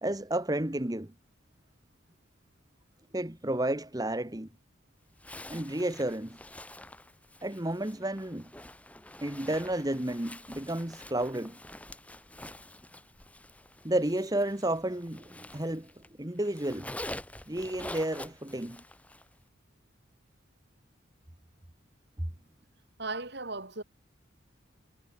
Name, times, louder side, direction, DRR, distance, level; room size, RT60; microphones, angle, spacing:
voice 1, 0.0-1.1 3.1-4.5 5.5-6.4 7.4-8.5 9.2-11.6 13.8-15.9 16.2-16.9 17.5-18.8 22.2-22.3, right 1 dB, 20° right, 1.2 m, -31 dB
Zipper (clothing), 5.2-16.1 16.4-19.3, left 1 dB, 5° left, 2.0 m, -47 dB
voice 2, 23.0-23.8, right 3 dB, 55° right, 4.0 m, -36 dB
head